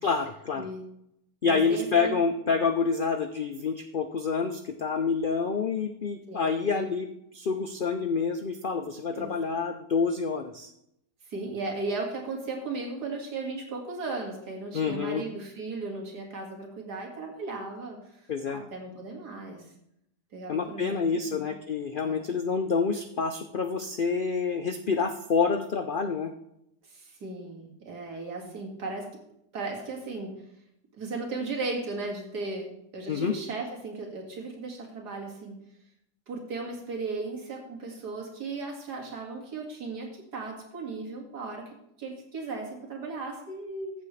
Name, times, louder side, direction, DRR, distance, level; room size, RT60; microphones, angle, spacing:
voice 1, 0.0-0.7 1.4-7.1 7.3-10.7 14.7-15.2 18.3-18.6 20.5-26.3 33.1-33.3, left 5 dB, 85° left, 7 dB, 0.4 m, -28 dB
voice 2, 0.5-0.8 1.5-2.2 2.5-2.6 6.3-6.9 9.1-9.4 11.3-18.0 18.5-19.7 20.3-21.5 22.0-22.3 26.8-29.1 29.5-30.3 30.9-35.5 36.3-41.7 42.0-43.9, right 3 dB, 75° right, 1 dB, 2.6 m, -36 dB
14.5 x 7.6 x 3.2 m, 0.78 s
omnidirectional pair, 1.7 m